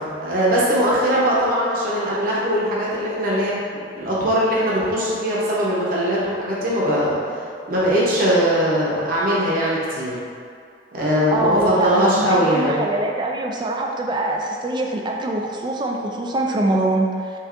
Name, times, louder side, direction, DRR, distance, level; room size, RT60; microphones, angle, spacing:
voice 1, 0.0-3.6 3.9-7.2 7.7-10.1 10.9-12.8, equal, 55° right, -7 dB, 0.9 m, -20 dB
voice 2, 11.3-17.3, right 2 dB, 25° right, 0 dB, 0.3 m, -23 dB
5.6 x 2.6 x 2.6 m, 2.3 s
head